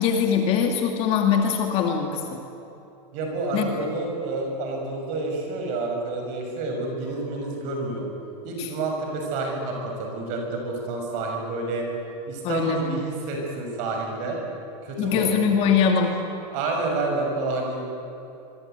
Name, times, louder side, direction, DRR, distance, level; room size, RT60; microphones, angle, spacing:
voice 1, 0.0-2.2 3.5-3.7 8.6-8.7 12.4-13.0 15.0-16.2, left 7 dB, 30° left, 3 dB, 2.2 m, -22 dB
voice 2, 3.1-8.1 8.4-11.9 12.3-14.4 14.8-15.4 16.5-17.8, right 3 dB, 35° right, 2 dB, 6.4 m, -29 dB
26.0 x 23.5 x 9.3 m, 2.9 s
supercardioid pair, 175°, 21 cm